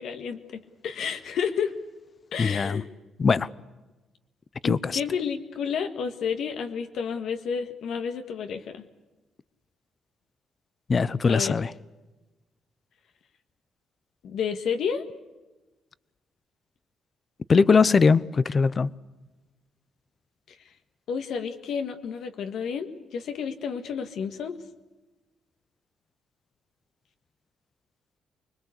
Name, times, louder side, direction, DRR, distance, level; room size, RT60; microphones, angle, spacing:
voice 1, 0.0-1.7 2.3-2.9 4.6-8.8 11.3-11.6 14.2-15.1 20.5-20.6 21.1-24.6, left 6 dB, 70° left, 1.8 m, -31 dB
voice 2, 2.4-2.8 3.2-3.5 4.6-4.9 10.9-11.7 17.5-18.9, left 5 dB, 35° left, 0.7 m, -21 dB
25.5 x 22.0 x 8.2 m
cardioid pair, 120°, 0 cm